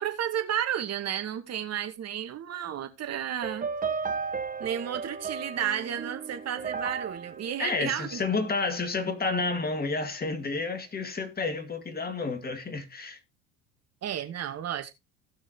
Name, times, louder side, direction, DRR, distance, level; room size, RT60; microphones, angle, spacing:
voice 1, 0.0-3.7 4.6-8.2 14.0-14.9, right 10 dB, 40° right, 2.1 m, -32 dB
sound 1, 3.4-8.7, right 5 dB, 20° right, 1.1 m, -35 dB
voice 2, 7.6-13.2, left 3 dB, 25° left, 2.4 m, -30 dB
17.0 x 6.0 x 2.9 m
hypercardioid pair, 75°, 38 cm